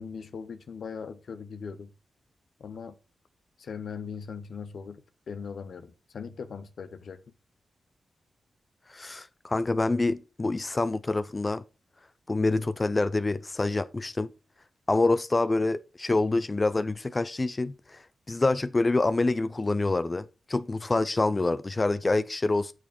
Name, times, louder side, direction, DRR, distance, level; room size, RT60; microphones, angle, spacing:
voice 1, 0.0-1.9 2.6-3.0 3.6-7.2, left 6 dB, 75° left, 0.9 m, -39 dB
voice 2, 8.9-11.6 12.3-14.3 14.9-22.7, left 2 dB, 35° left, 0.6 m, -26 dB
9.1 x 6.3 x 4.3 m
cardioid pair, 50°, 0 cm